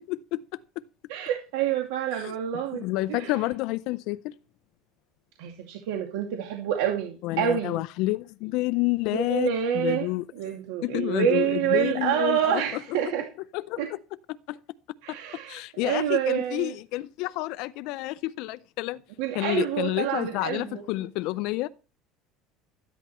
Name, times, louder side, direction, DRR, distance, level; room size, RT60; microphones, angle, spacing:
voice 1, 0.1-0.4 2.1-2.3 2.7-4.4 7.2-10.2 10.8-13.1 13.5-14.0 14.5-14.6 15.1-15.2 15.5-19.0 19.3-21.7, left 18 dB, 65° left, 0.5 m, -29 dB
voice 2, 1.1-2.8 3.1-3.3 5.4-7.8 9.1-10.1 10.4-13.3 13.8-13.9 15.0-16.7 19.2-20.8, right 10 dB, 85° right, 2.4 m, -27 dB
13.0 x 10.5 x 4.3 m
cardioid pair, 135°, 0 cm